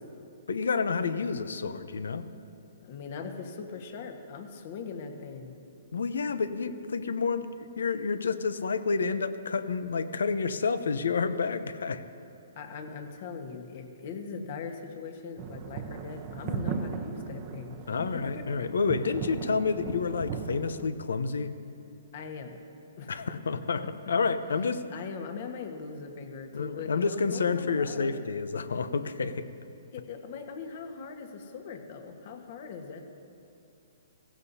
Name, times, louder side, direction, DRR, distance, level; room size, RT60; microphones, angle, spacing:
voice 1, 0.5-2.3 5.9-7.5 7.8-12.0 17.9-21.5 23.1-24.8 26.5-29.5, left 5 dB, 80° left, 12 dB, 0.7 m, -29 dB
voice 2, 2.8-5.5 12.5-17.8 18.3-18.4 22.1-22.6 23.0-23.3 24.9-28.3 29.9-33.0, left 5 dB, 50° left, 5 dB, 1.4 m, -40 dB
sound 1, 15.4-20.9, right 7 dB, 35° right, 0.8 m, -37 dB
16.5 x 15.5 x 2.8 m, 2.7 s
hypercardioid pair, 140°, 0 cm